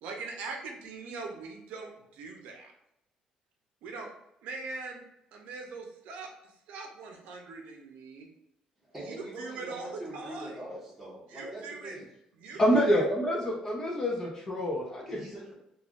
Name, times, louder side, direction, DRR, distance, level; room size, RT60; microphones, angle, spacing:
voice 1, 0.0-2.7 3.8-4.1 4.4-5.0 5.3-6.3 6.7-8.3 9.0-10.6 11.3-11.9 12.4-12.6, right 4 dB, 85° right, 2 dB, 0.6 m, -41 dB
voice 2, 8.8-12.0 12.5-12.6 15.1-15.5, right 1 dB, 5° right, -6 dB, 1.1 m, -43 dB
voice 3, 12.6-15.2, equal, 25° left, -1 dB, 0.5 m, -27 dB
3.3 x 2.3 x 2.4 m, 0.81 s
cardioid pair, 160°, 2 cm